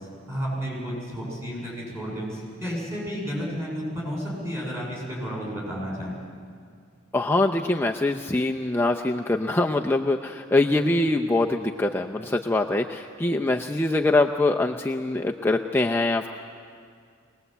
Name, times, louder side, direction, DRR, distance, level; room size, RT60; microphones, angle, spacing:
voice 1, 0.0-6.2, equal, 15° right, -4 dB, 8.0 m, -32 dB
voice 2, 7.1-16.3, left 2 dB, 10° left, 2 dB, 0.6 m, -23 dB
23.0 x 19.5 x 8.0 m, 2.2 s
head